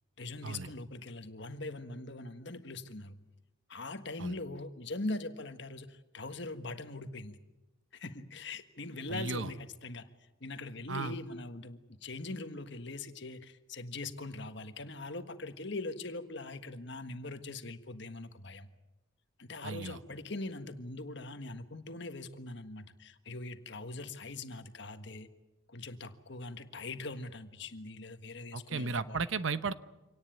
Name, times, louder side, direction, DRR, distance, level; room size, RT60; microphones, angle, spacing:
voice 1, 0.2-3.2 3.7-7.4 7.9-10.1 10.4-18.7 19.4-25.3 25.7-29.2, left 2 dB, 55° left, 8 dB, 1.6 m, -42 dB
voice 2, 9.1-9.5 10.9-11.2 19.6-20.0 28.5-29.7, right 4 dB, 70° right, 13 dB, 0.9 m, -35 dB
26.0 x 18.0 x 9.3 m, 1.1 s
head